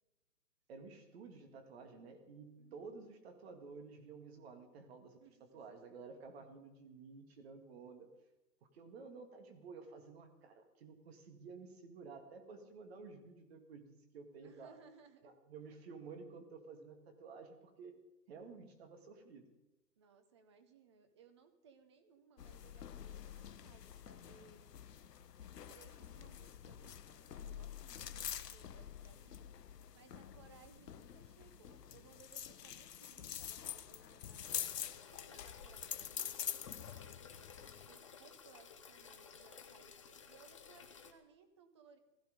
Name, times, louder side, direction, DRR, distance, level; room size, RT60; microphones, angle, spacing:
voice 1, 0.7-8.1 8.7-14.8 15.2-18.0 18.3-19.5, right 4 dB, 40° right, 6 dB, 2.1 m, -53 dB
voice 2, 2.6-3.0 5.2-5.5 14.4-15.4 20.0-24.7 25.4-29.7 29.9-34.7 35.1-36.5 37.2-42.0, right 5 dB, 20° right, 8 dB, 0.6 m, -64 dB
sound 1, 22.4-37.9, left 9 dB, 75° left, 1.0 m, -47 dB
sound 2, 34.4-41.1, left 6 dB, 20° left, 0.6 m, -55 dB
16.0 x 14.0 x 5.1 m, 1.0 s
hypercardioid pair, 150°, 49 cm